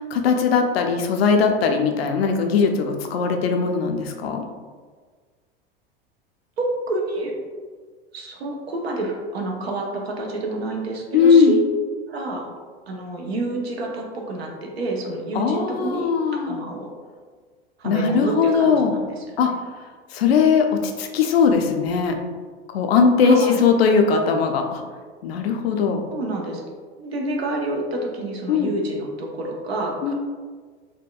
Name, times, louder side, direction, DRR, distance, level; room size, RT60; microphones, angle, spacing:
voice 1, 0.0-4.4 11.1-11.6 15.3-16.6 17.8-18.9 19.4-19.5 20.1-22.2 22.7-24.8 25.2-26.0 28.5-28.7 30.0-30.1, left 5 dB, 75° left, 4 dB, 0.5 m, -19 dB
voice 2, 6.6-7.3 8.1-11.6 12.1-12.5 12.9-16.1 16.5-16.9 17.8-19.2 23.2-23.6 26.1-26.6 27.0-30.1, right 2 dB, 80° right, 0 dB, 0.7 m, -28 dB
4.2 x 2.2 x 2.3 m, 1.5 s
hypercardioid pair, 85°, 30 cm